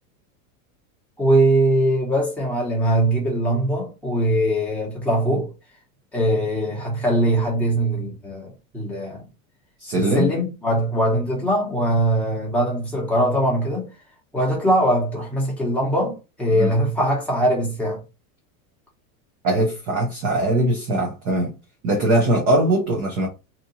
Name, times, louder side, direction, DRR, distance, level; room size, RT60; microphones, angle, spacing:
voice 1, 1.2-5.5 6.1-9.2 9.9-13.9 14.3-18.0, right 1 dB, 5° left, 0.9 m, -21 dB
voice 2, 9.8-10.3 16.6-16.7 19.4-21.5 21.8-23.3, right 1 dB, 25° right, 0.3 m, -21 dB
2.8 x 2.4 x 3.9 m
supercardioid pair, 165°, 44 cm